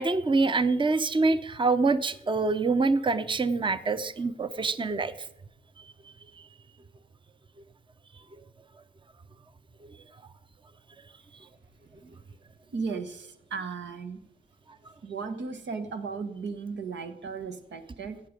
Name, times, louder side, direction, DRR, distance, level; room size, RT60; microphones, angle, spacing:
voice 1, 0.0-5.1, right 3 dB, 30° right, 13 dB, 0.7 m, -25 dB
voice 2, 12.7-14.2 15.0-18.2, right 5 dB, 90° right, 8 dB, 1.2 m, -35 dB
16.0 x 7.6 x 5.2 m, 0.82 s
cardioid pair, 70°, 18 cm